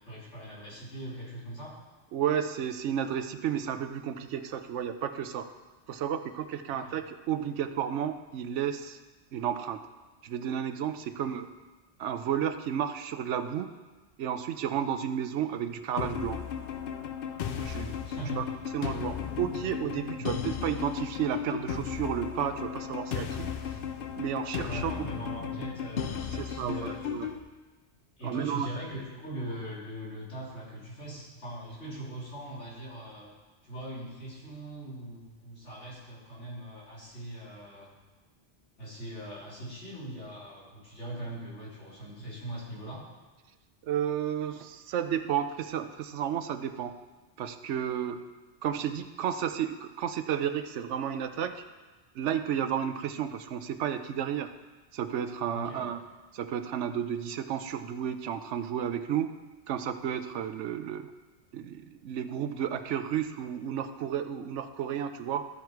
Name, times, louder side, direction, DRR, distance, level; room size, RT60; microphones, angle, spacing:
voice 1, 0.0-1.7 6.8-7.0 11.2-11.3 17.5-18.4 20.2-20.3 24.7-27.3 28.2-33.3 33.6-37.9 38.8-43.0 55.5-55.9, right 1 dB, 90° left, -7 dB, 3.6 m, -41 dB
voice 2, 2.1-5.5 5.9-9.0 9.3-9.8 10.2-11.5 12.0-13.7 14.2-16.4 17.6-17.9 18.3-18.4 18.7-23.5 24.2-25.1 26.3-27.3 28.2-28.7 43.8-46.9 47.4-48.2 48.6-51.6 52.1-54.5 54.9-56.0 56.3-59.3 59.7-61.1 61.5-65.5, right 9 dB, 80° right, 9 dB, 0.9 m, -32 dB
sound 1, 16.0-27.4, left 8 dB, 60° left, 0.7 m, -35 dB
14.0 x 4.7 x 4.6 m, 1.3 s
omnidirectional pair, 1.2 m